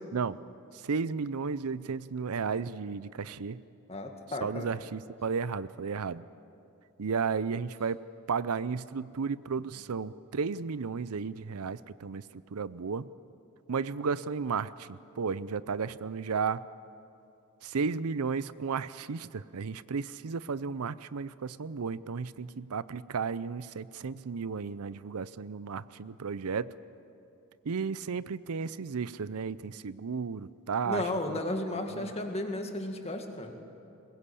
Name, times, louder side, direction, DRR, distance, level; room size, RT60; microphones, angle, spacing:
voice 1, 0.7-3.6 4.4-6.2 7.0-8.0 8.3-13.1 13.7-16.6 17.6-26.7 27.6-31.0 31.3-31.4 31.9-32.1, right 5 dB, 80° right, 17 dB, 0.6 m, -33 dB
voice 2, 3.9-4.7 30.9-33.6, left 1 dB, 30° left, 4 dB, 1.9 m, -34 dB
22.0 x 21.0 x 8.4 m, 2.7 s
head